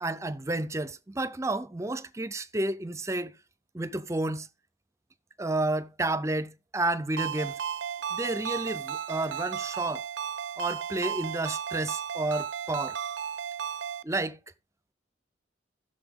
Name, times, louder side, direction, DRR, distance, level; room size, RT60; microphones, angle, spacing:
voice 1, 0.0-3.3 3.7-4.5 5.4-7.6 8.1-10.0 10.6-13.0 14.0-14.4, right 2 dB, 15° right, 0.5 m, -31 dB
Ringtone, 7.2-14.0, right 8 dB, 75° right, 0.5 m, -34 dB
15.0 x 6.6 x 3.6 m
head